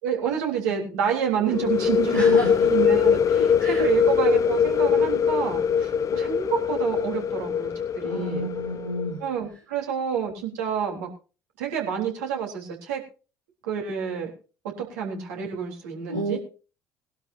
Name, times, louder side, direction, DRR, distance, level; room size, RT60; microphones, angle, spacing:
voice 1, 0.0-2.4 2.6-8.5 9.2-11.1 11.6-13.0 13.6-14.3 14.6-16.4, right 8 dB, 70° right, 1 dB, 3.6 m, -28 dB
sound 1, 1.5-9.1, left 7 dB, 40° left, 0.9 m, -22 dB
voice 2, 2.1-2.7 3.4-3.9 8.0-9.2 16.1-16.4, right 1 dB, 90° right, -2 dB, 1.9 m, -31 dB
21.0 x 12.0 x 2.7 m, 0.34 s
figure-of-eight pair, 55°, 9 cm